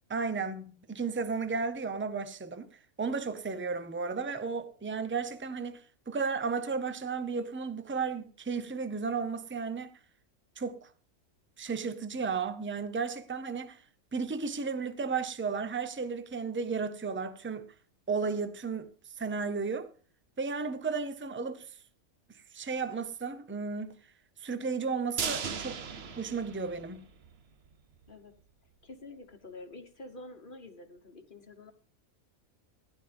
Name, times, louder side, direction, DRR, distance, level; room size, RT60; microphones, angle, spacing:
voice 1, 0.1-2.7 3.0-9.9 10.6-10.9 11.6-13.8 14.1-17.7 18.1-18.9 19.2-19.9 20.4-21.7 22.3-23.9 24.4-25.8 26.2-27.1, right 5 dB, 15° right, 0.5 m, -34 dB
sound 1, 25.2-27.3 27.6-27.7 28.1-28.2, right 6 dB, 50° right, 1.0 m, -37 dB
voice 2, 28.8-31.7, left 2 dB, 40° left, 1.3 m, -48 dB
15.5 x 11.0 x 3.4 m
omnidirectional pair, 1.5 m